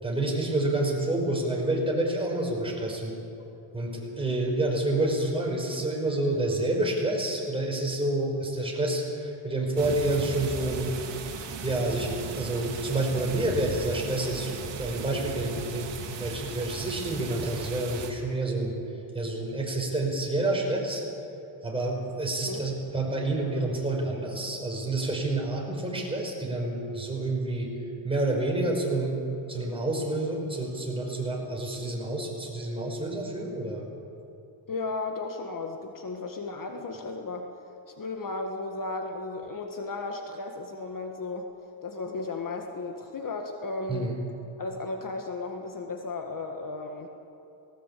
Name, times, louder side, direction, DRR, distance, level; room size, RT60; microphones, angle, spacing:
voice 1, 0.0-3.2 3.7-10.9 11.6-14.5 14.8-18.8 19.1-21.0 21.6-27.7 28.0-29.2 29.5-33.8 43.9-44.2, right 2 dB, 10° right, -1 dB, 5.3 m, -28 dB
sound 1, 9.8-18.1, right 5 dB, 65° right, 2.7 m, -37 dB
voice 2, 34.7-37.4 38.0-41.5 41.8-44.1 44.6-47.1, left 3 dB, 45° left, 4 dB, 1.7 m, -34 dB
19.0 x 18.5 x 8.5 m, 2.9 s
cardioid pair, 110°, 47 cm